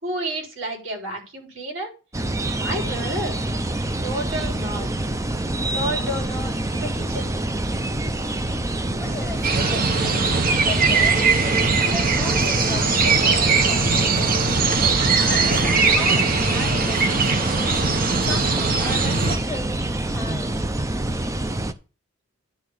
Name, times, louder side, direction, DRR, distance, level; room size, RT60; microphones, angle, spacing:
voice 1, 0.0-1.9 2.5-3.4 4.0-4.9 5.7-7.3, right 1 dB, 75° right, 0 dB, 3.7 m, -30 dB
sound 1, 2.1-21.7, right 1 dB, 15° right, 0.6 m, -26 dB
voice 2, 9.0-11.2 11.8-14.6 15.1-17.7 18.2-19.8 20.1-20.6, left 3 dB, 10° left, -1 dB, 2.4 m, -37 dB
sound 2, 9.4-19.4, right 4 dB, 45° right, 1.1 m, -20 dB
10.5 x 3.7 x 6.6 m, 0.33 s
head